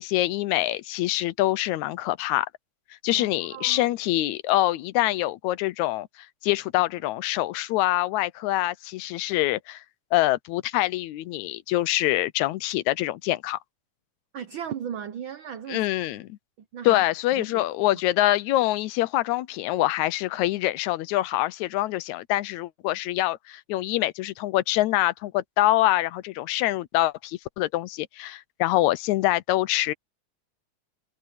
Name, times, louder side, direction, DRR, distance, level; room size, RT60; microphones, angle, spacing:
voice 1, 0.0-2.5 3.0-6.1 6.4-9.8 10.1-13.6 15.7-16.4 16.8-29.9, left 16 dB, 80° left, 2.0 m, -25 dB
voice 2, 3.1-3.9 14.3-15.8 16.7-17.0 17.4-17.6, right 8 dB, 80° right, 1.1 m, -36 dB
omnidirectional pair, 3.4 m